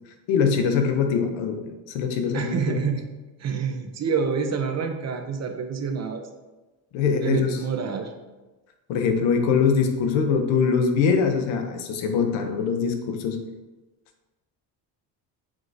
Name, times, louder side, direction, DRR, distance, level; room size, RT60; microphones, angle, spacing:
voice 1, 0.3-2.8 6.9-7.6 8.9-13.4, left 6 dB, 85° left, 6 dB, 0.7 m, -23 dB
voice 2, 2.3-3.0 3.4-6.2 7.2-8.1, right 5 dB, 35° right, 5 dB, 0.5 m, -27 dB
4.8 x 3.8 x 2.6 m, 1.2 s
cardioid pair, 90°, 45 cm